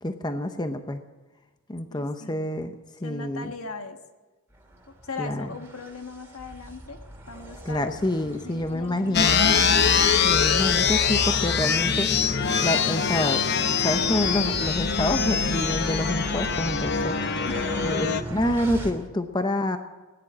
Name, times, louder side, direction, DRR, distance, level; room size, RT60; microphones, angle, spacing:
voice 1, 0.0-1.0 1.7-2.7 3.0-3.5 5.2-5.5 7.6-9.4 10.2-12.1 12.6-13.4 13.8-17.2 17.8-19.8, left 1 dB, 20° left, 8 dB, 0.7 m, -27 dB
voice 2, 1.9-2.5 3.0-4.0 5.0-7.0 7.3-7.9 8.2-9.3 17.5-17.6, left 4 dB, 80° left, 6 dB, 1.4 m, -39 dB
sound 1, 4.5-18.9, right 1 dB, 10° right, 2.4 m, -38 dB
sound 2, 9.1-18.2, left 6 dB, 50° left, 0.8 m, -23 dB
17.5 x 10.5 x 7.3 m, 1.2 s
head